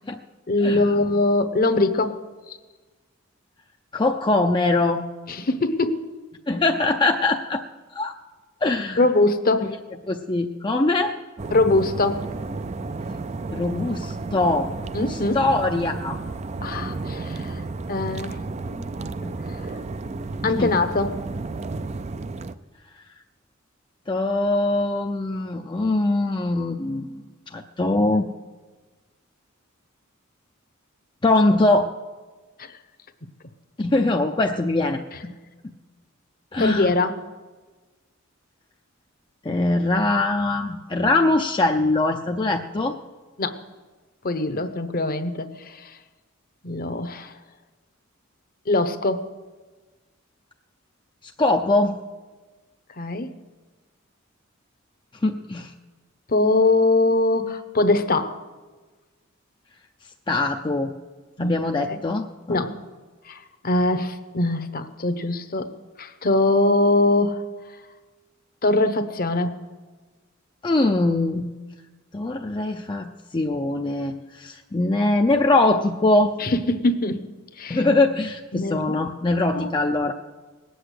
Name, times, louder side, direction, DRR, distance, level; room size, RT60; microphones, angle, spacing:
voice 1, 0.5-2.2 2.5-2.6 5.3-6.0 9.0-9.7 11.5-12.2 14.9-15.4 16.6-17.6 17.9-19.3 19.6-19.8 20.4-21.1 32.6-32.7 35.1-35.2 36.6-37.2 43.4-43.6 44.2-45.9 46.6-47.3 48.7-49.3 53.0-53.3 56.3-58.4 61.4-61.6 61.9-62.0 62.5-62.8 63.3-65.7 66.0-67.4 68.6-69.6 76.4-77.2 77.6-77.8 78.5-79.0 79.5-79.8, left 2 dB, 45° left, 10 dB, 0.9 m, -22 dB
voice 2, 3.9-5.0 6.5-7.6 7.9-8.1 8.6-9.0 9.6-9.7 10.1-11.1 13.5-14.7 15.1-16.2 20.4-20.7 24.1-27.2 27.5-28.3 31.2-31.9 33.8-35.3 36.5-36.9 39.4-42.9 51.4-52.0 55.2-55.7 60.3-60.9 61.4-62.6 70.6-71.5 72.1-76.3 77.7-80.1, left 2 dB, 25° left, 3 dB, 0.5 m, -22 dB
sound 1, 11.4-22.5, right 3 dB, 35° right, 0.4 m, -32 dB
19.5 x 7.9 x 8.3 m, 1.3 s
head